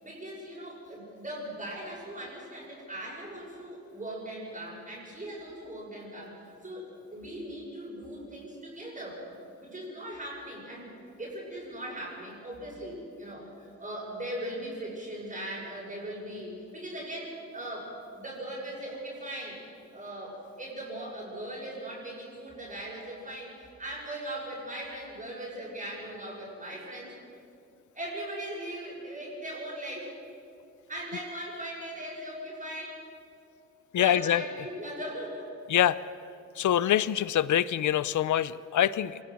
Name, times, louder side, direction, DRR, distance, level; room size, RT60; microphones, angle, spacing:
voice 1, 0.0-9.2 9.6-10.9 11.2-19.6 19.9-27.1 27.9-30.1 30.9-33.0 33.9-35.5, right 1 dB, 25° right, -4 dB, 6.5 m, -39 dB
voice 2, 33.9-34.4 35.7-36.0 36.6-39.2, left 11 dB, 80° left, 17 dB, 0.6 m, -25 dB
26.0 x 19.0 x 6.3 m, 2.6 s
wide cardioid pair, 120°, 29 cm